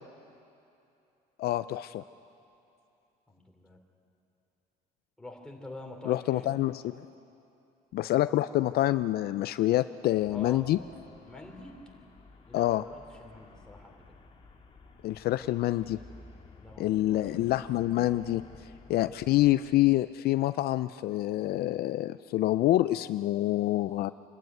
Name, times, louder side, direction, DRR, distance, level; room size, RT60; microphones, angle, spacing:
voice 1, 1.4-2.0 6.1-7.0 7.9-10.8 12.5-12.8 15.0-16.0 16.8-18.4 18.9-24.1, left 15 dB, 65° left, 13 dB, 0.4 m, -27 dB
voice 2, 3.3-3.8 5.2-6.5 10.3-10.7 11.2-11.7 12.5-14.0 16.6-17.5, left 2 dB, 5° left, 1 dB, 3.1 m, -46 dB
Traffic noise roadway noise, 10.2-20.0, left 3 dB, 35° left, 1.9 m, -54 dB
26.0 x 12.0 x 9.4 m, 2.8 s
cardioid pair, 110°, 17 cm